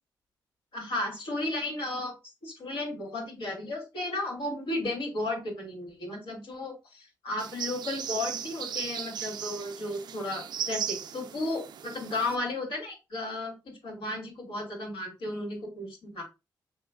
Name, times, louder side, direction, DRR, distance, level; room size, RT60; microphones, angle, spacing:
voice 1, 0.7-2.1 2.4-16.2, left 2 dB, 85° left, -2 dB, 2.5 m, -34 dB
sound 1, 7.4-12.4, right 9 dB, 70° right, 0.4 m, -37 dB
5.7 x 3.0 x 2.3 m, 0.26 s
cardioid pair, 95°, 8 cm